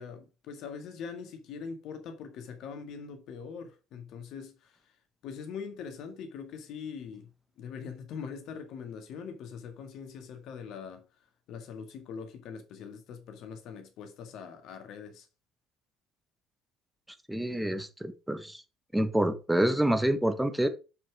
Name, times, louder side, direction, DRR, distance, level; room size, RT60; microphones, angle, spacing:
voice 1, 0.0-4.9 5.2-11.0 11.5-15.3, left 6 dB, 60° left, 1.9 m, -42 dB
voice 2, 17.3-18.6 18.9-20.7, right 1 dB, 5° right, 1.4 m, -27 dB
7.0 x 6.2 x 4.8 m
figure-of-eight pair, 55°, 0 cm